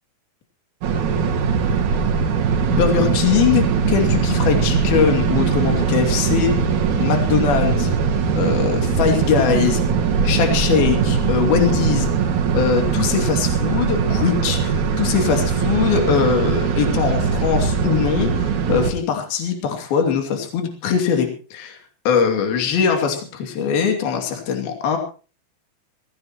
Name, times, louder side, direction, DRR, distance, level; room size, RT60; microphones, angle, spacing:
sound 1, 0.8-18.9, right 6 dB, 55° right, 2.9 m, -20 dB
voice 1, 2.7-6.5 7.0-7.9 8.4-9.8 10.2-21.8 22.1-25.0, left 7 dB, 65° left, 4 dB, 4.4 m, -21 dB
21.0 x 16.5 x 3.0 m, 0.36 s
omnidirectional pair, 4.8 m